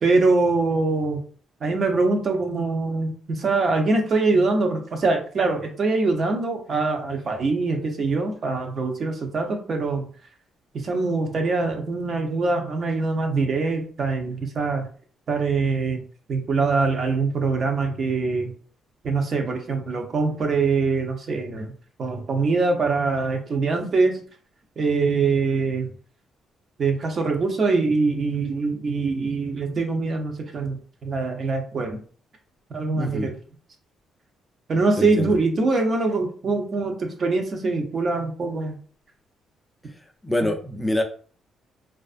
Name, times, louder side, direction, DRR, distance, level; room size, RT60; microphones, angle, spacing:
voice 1, 0.0-1.2 1.6-10.0 10.8-14.9 15.3-16.0 16.3-18.5 19.0-21.7 22.0-24.1 24.8-25.9 26.8-30.8 31.0-32.0 32.7-33.3 34.7-38.8, right 3 dB, 50° right, 3 dB, 0.6 m, -23 dB
voice 2, 32.9-33.3 35.0-35.4 40.2-41.0, left 1 dB, 10° left, 4 dB, 0.4 m, -25 dB
2.4 x 2.4 x 2.4 m, 0.43 s
cardioid pair, 90°, 0 cm